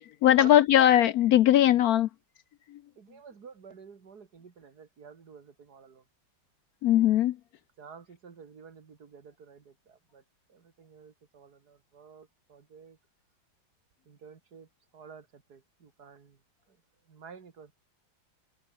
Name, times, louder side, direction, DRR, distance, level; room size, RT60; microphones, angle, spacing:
voice 1, 0.2-2.1 2.7-2.8 6.8-7.4, left 12 dB, 75° left, 0.8 m, -20 dB
voice 2, 3.0-6.1 7.8-10.2 10.5-13.0 14.1-16.4 16.7-16.8 17.1-17.7, right 6 dB, 50° right, 2.6 m, -50 dB
omnidirectional pair, 2.2 m